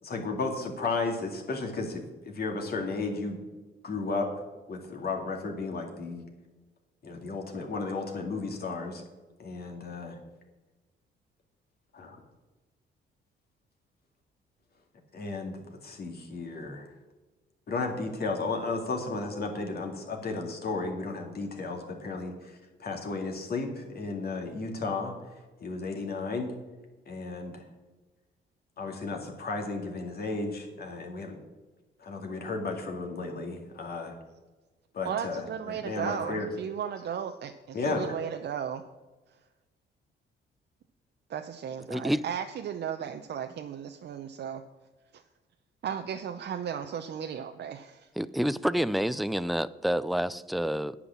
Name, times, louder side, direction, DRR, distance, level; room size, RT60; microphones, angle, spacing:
voice 1, 0.0-3.4 3.8-4.3 4.7-6.2 7.0-9.0 9.4-10.2 11.9-12.2 15.1-15.6 15.8-16.9 17.7-22.5 22.8-25.1 25.6-26.6 27.1-27.6 28.8-31.4 32.0-34.1 34.9-36.5 37.7-38.2, left 3 dB, 50° left, 2 dB, 2.3 m, -34 dB
voice 2, 35.0-38.8 41.3-44.6 45.1-45.2 45.8-48.1, right 8 dB, 60° right, 6 dB, 0.7 m, -35 dB
voice 3, 41.9-42.2 48.2-51.0, equal, ahead, 16 dB, 0.3 m, -28 dB
9.8 x 6.1 x 7.2 m, 1.2 s
cardioid pair, 90°, 20 cm